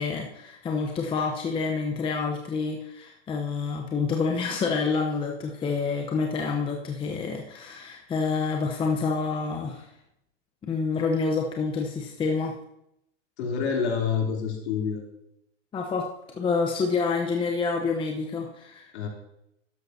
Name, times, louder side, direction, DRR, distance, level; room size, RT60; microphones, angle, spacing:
voice 1, 0.0-9.9 10.6-12.5 15.7-16.1 16.3-18.9, left 4 dB, 15° left, 1 dB, 0.8 m, -28 dB
voice 2, 13.4-15.0 18.9-19.1, left 6 dB, 60° left, 0 dB, 3.2 m, -27 dB
12.5 x 10.5 x 2.7 m, 0.79 s
hypercardioid pair, 130°, 37 cm